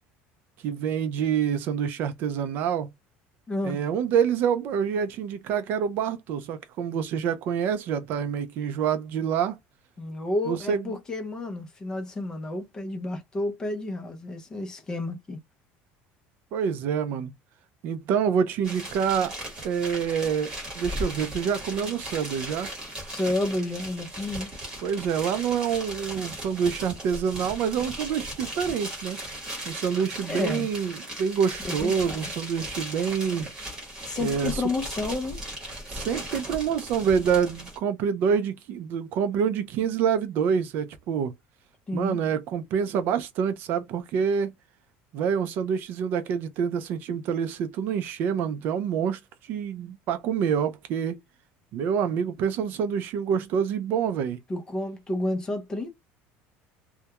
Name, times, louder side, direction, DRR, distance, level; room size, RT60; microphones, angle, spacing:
voice 1, 0.6-2.9 3.6-9.6 10.5-10.8 16.5-17.3 17.8-19.4 19.6-22.7 24.8-29.2 29.7-33.5 34.2-34.6 35.9-41.3 41.9-44.5 45.1-51.2 51.7-54.4, right 7 dB, 45° right, 0.3 m, -27 dB
voice 2, 3.5-3.8 10.0-15.4 23.1-24.5 30.2-30.7 31.7-32.3 34.1-35.4 41.9-42.2 54.5-55.9, left 2 dB, 15° left, 0.5 m, -30 dB
sound 1, 18.6-37.8, right 1 dB, 15° right, 1.1 m, -37 dB
2.3 x 2.1 x 2.8 m
cardioid pair, 180°, 5 cm